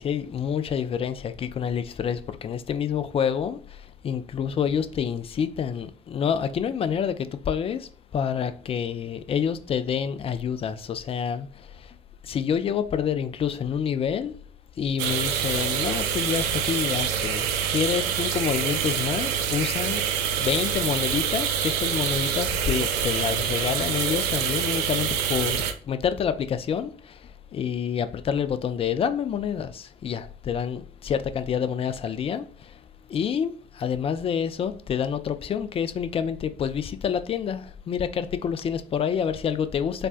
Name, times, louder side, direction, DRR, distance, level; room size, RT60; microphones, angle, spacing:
voice 1, 0.0-12.0 12.2-14.3 14.8-20.0 20.4-32.8 33.1-40.1, left 7 dB, 30° left, 0.3 m, -28 dB
sound 1, 15.0-25.7, right 8 dB, 60° right, 0.4 m, -26 dB
4.2 x 2.2 x 2.4 m
figure-of-eight pair, 45°, 19 cm